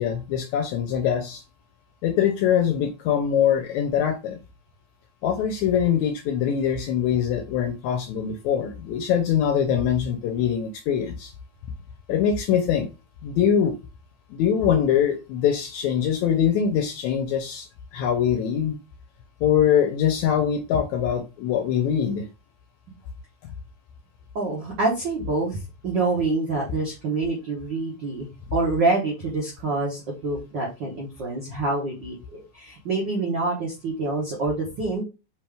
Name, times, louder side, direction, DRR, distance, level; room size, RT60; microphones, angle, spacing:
voice 1, 0.0-1.4 2.0-4.4 5.2-11.3 12.1-12.9 13.2-13.8 14.3-18.8 19.4-22.3, left 8 dB, 85° left, 6 dB, 1.7 m, -23 dB
voice 2, 24.3-35.0, right 3 dB, 90° right, -2 dB, 0.9 m, -26 dB
5.2 x 2.9 x 3.4 m, 0.28 s
omnidirectional pair, 3.8 m